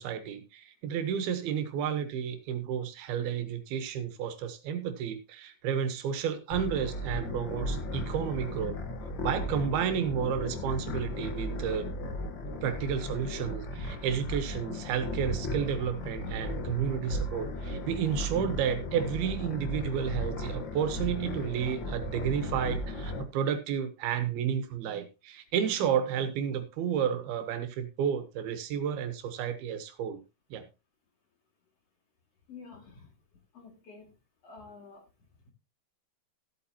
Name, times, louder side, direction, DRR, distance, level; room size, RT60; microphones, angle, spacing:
voice 1, 0.0-8.8 9.2-11.9 12.6-30.2 30.5-30.6, right 8 dB, 80° right, 9 dB, 3.0 m, -31 dB
sound 1, 6.5-23.2, left 1 dB, 70° left, 1.1 m, -36 dB
voice 2, 32.5-33.1 33.5-34.1 34.4-35.0, left 4 dB, 45° left, 2 dB, 3.0 m, -49 dB
14.5 x 8.5 x 2.9 m, 0.27 s
omnidirectional pair, 4.5 m